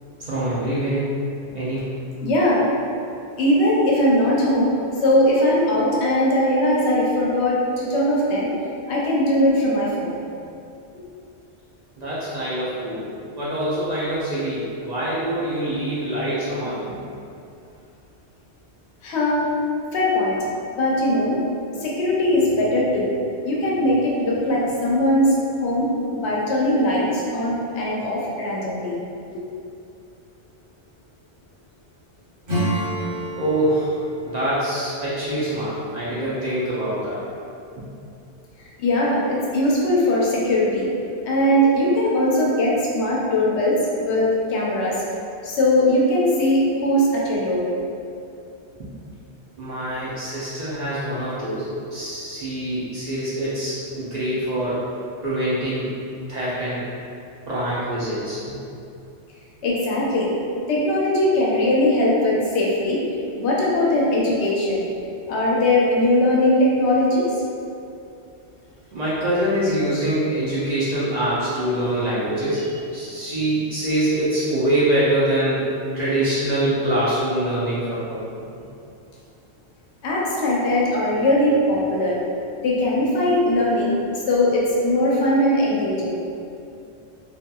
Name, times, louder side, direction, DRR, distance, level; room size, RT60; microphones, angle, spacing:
voice 1, 0.2-1.1 1.5-1.8 12.0-13.1 13.3-16.8 33.4-33.9 34.2-37.2 48.8-48.9 49.6-54.8 55.2-55.9 56.3-56.9 57.5-58.6 68.9-75.6 75.9-78.3, right 1 dB, 50° right, -9 dB, 0.5 m, -24 dB
voice 2, 2.2-2.6 3.4-4.7 5.0-8.5 8.9-10.2 19.0-19.5 19.9-20.4 20.8-21.4 21.8-23.1 23.4-25.3 25.6-29.0 29.3-29.4 38.8-40.9 41.2-43.8 44.1-44.9 45.4-47.6 59.6-60.3 60.7-63.0 63.4-64.8 65.3-67.3 80.0-82.1 82.6-84.0 84.3-86.2, left 1 dB, 90° left, -4 dB, 0.9 m, -20 dB
Acoustic guitar / Strum, 32.4-36.8, right 1 dB, 70° right, 1.3 m, -30 dB
2.8 x 2.3 x 2.2 m, 2.6 s
omnidirectional pair, 1.1 m